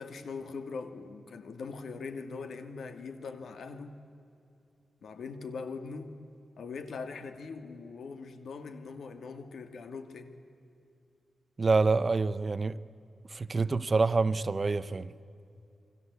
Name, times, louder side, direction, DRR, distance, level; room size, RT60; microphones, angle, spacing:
voice 1, 0.0-4.0 5.0-6.2 6.6-10.4, left 4 dB, 80° left, 2.2 m, -41 dB
voice 2, 11.6-12.8 13.3-15.1, right 3 dB, 35° right, 0.7 m, -27 dB
29.0 x 24.0 x 8.3 m
wide cardioid pair, 115°, 0 cm